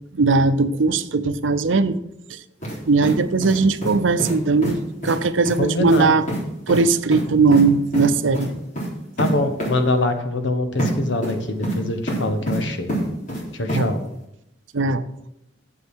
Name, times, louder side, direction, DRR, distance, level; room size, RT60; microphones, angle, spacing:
voice 1, 0.1-2.0 2.3-2.4 2.9-6.3 6.7-8.5 13.7-13.9 14.7-15.0, right 3 dB, 85° right, 12 dB, 0.7 m, -19 dB
sound 1, 2.6-2.8 3.0-3.9 4.2-4.4 4.6-4.7 5.0-5.2 5.5-5.6 5.9-6.0 6.3-6.4 6.7-6.8 7.1-7.6 7.9-8.1 8.3-8.5 8.8-8.9 9.2-9.3 9.6-9.7 10.8-10.9 11.2-11.8 12.1-12.6 12.9-13.4 13.7-13.8, right 1 dB, 45° left, 3.7 m, -26 dB
voice 2, 5.6-6.2 9.2-12.9 13.5-14.0, left 2 dB, 70° left, 8 dB, 1.2 m, -23 dB
8.6 x 7.7 x 6.3 m, 0.81 s
head